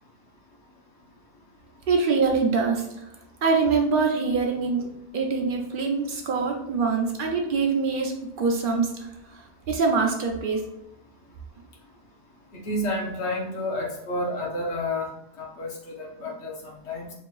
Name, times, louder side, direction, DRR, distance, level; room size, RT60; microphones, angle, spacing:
voice 1, 1.9-3.0 3.4-4.9 5.1-9.4 9.7-10.6, right 4 dB, 55° right, 1 dB, 0.8 m, -24 dB
voice 2, 12.5-15.1 15.4-17.1, left 1 dB, 85° left, -1 dB, 1.2 m, -30 dB
5.1 x 2.9 x 2.3 m, 0.85 s
omnidirectional pair, 1.1 m